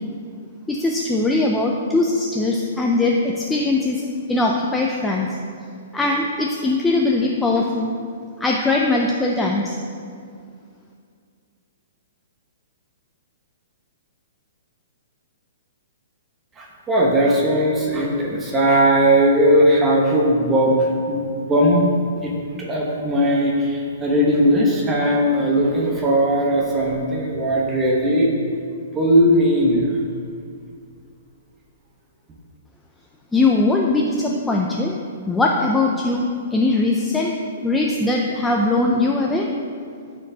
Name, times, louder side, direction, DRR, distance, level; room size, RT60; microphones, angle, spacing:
voice 1, 0.7-5.4 5.9-7.9 8.4-9.8 33.3-35.0 35.3-36.2 36.5-39.5, left 2 dB, 5° left, -1 dB, 0.3 m, -20 dB
voice 2, 16.6-21.9 22.2-22.3 22.6-28.3 28.9-30.0, equal, 10° right, -2 dB, 0.9 m, -18 dB
12.0 x 4.4 x 2.7 m, 2.2 s
hypercardioid pair, 170°, 0 cm